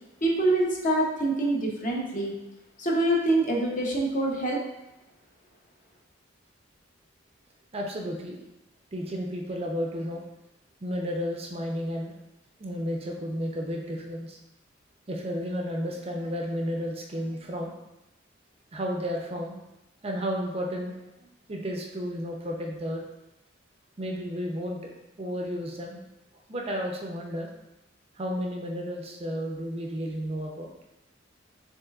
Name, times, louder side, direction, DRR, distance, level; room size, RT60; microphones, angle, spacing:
voice 1, 0.2-2.3 2.8-4.6, right 1 dB, 40° left, -1 dB, 0.8 m, -25 dB
voice 2, 7.7-8.4 8.9-10.2 10.8-12.2 12.6-14.4 15.1-17.7 18.7-19.6 20.0-21.0 21.5-23.0 24.0-24.9 25.2-26.0 26.5-27.5 28.2-30.7, equal, 30° right, 0 dB, 0.5 m, -32 dB
6.4 x 3.2 x 2.3 m, 0.93 s
head